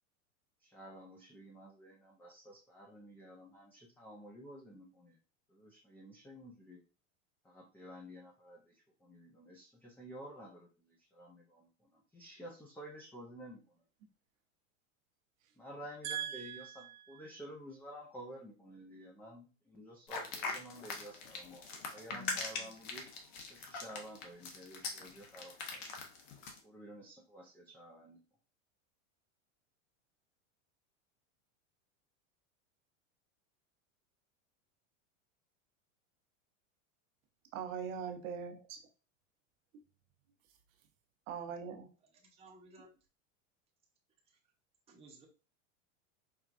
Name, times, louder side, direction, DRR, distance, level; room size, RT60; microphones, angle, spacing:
voice 1, 0.6-5.2 5.5-6.8 7.4-13.8 15.6-23.1 23.5-25.9 26.6-28.2, equal, 5° left, -2 dB, 0.4 m, -52 dB
voice 2, 16.0-17.2 22.1-22.4 37.5-38.8 41.3-41.9, right 8 dB, 75° right, 5 dB, 1.0 m, -41 dB
sound 1, 20.1-26.6, left 4 dB, 55° left, 1.0 m, -41 dB
voice 3, 42.4-42.9 44.9-45.3, right 3 dB, 15° right, -1 dB, 0.8 m, -56 dB
4.7 x 2.3 x 2.5 m, 0.34 s
supercardioid pair, 120°, 40 cm